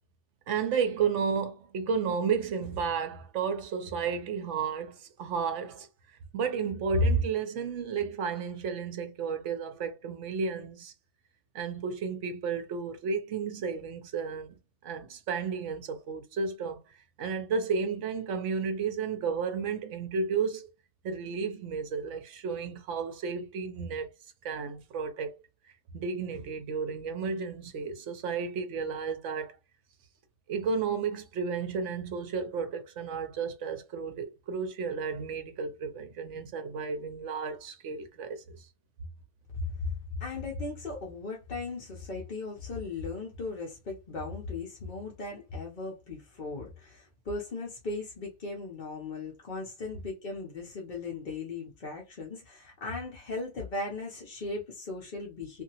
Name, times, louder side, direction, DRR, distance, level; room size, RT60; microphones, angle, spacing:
voice 1, 0.5-5.9 6.3-10.9 11.5-20.7 21.0-24.1 24.4-25.3 25.9-29.6 30.5-38.6, right 5 dB, 65° right, 0.9 m, -32 dB
voice 2, 39.5-39.9 40.2-55.6, left 3 dB, 45° left, 0.7 m, -37 dB
2.8 x 2.6 x 2.8 m
omnidirectional pair, 1.5 m